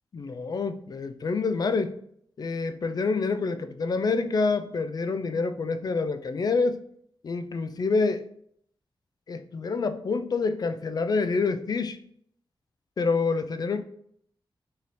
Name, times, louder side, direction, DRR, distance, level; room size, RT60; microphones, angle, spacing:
voice 1, 0.1-2.0 2.4-6.8 7.2-8.2 9.3-12.0 13.0-13.8, left 4 dB, 45° left, 10 dB, 0.3 m, -27 dB
3.1 x 2.8 x 4.0 m, 0.66 s
wide cardioid pair, 95°, 9 cm